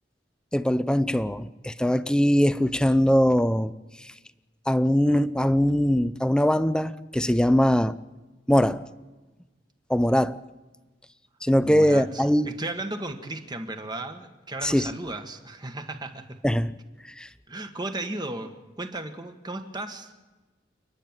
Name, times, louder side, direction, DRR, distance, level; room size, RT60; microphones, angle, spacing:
voice 1, 0.5-3.7 4.7-8.0 8.5-8.9 9.9-10.4 11.4-12.5 14.6-14.9 16.4-16.7 17.2-17.3, equal, 5° left, 0.6 m, -21 dB
voice 2, 11.6-16.4 17.5-20.2, right 2 dB, 25° right, 1.7 m, -35 dB
29.5 x 10.0 x 9.1 m
head